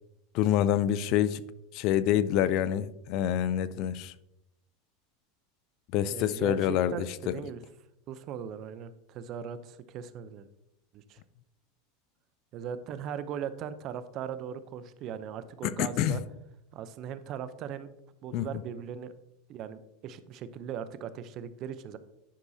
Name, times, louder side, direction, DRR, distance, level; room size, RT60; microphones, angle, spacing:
voice 1, 0.3-1.4 1.7-4.1 5.9-7.1 15.6-16.2 18.3-18.5, left 11 dB, 55° left, 0.4 m, -26 dB
voice 2, 6.1-7.6 8.1-10.5 10.9-11.2 12.5-16.2 16.7-17.9 18.2-19.1 19.5-22.0, right 8 dB, 45° right, 0.6 m, -39 dB
10.0 x 6.1 x 2.7 m
supercardioid pair, 120°, 0 cm